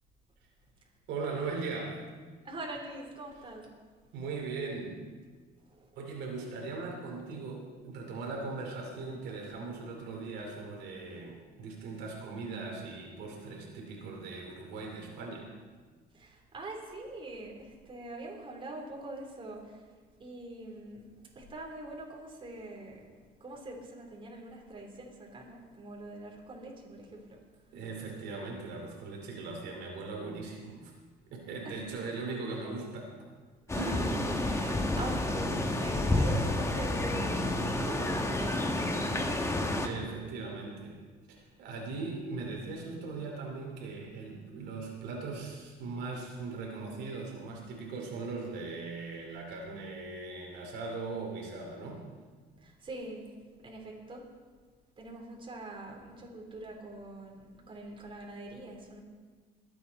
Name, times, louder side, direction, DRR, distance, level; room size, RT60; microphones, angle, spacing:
voice 1, 1.1-2.0 4.1-5.0 6.0-15.5 27.7-30.9 31.3-33.1 33.7-34.2 39.8-41.0 41.6-52.0, right 3 dB, 85° right, -1 dB, 2.8 m, -39 dB
voice 2, 2.4-3.7 5.7-5.8 16.1-19.9 20.2-23.0 23.4-27.4 31.6-31.8 33.7-34.1 34.4-37.5 37.8-39.9 52.6-53.3 53.6-54.2 55.0-59.0, right 2 dB, 30° right, -1 dB, 3.4 m, -43 dB
sound 1, 33.7-39.9, left 1 dB, 15° left, 1.3 m, -30 dB
22.0 x 8.4 x 4.1 m, 1.4 s
cardioid pair, 110°, 17 cm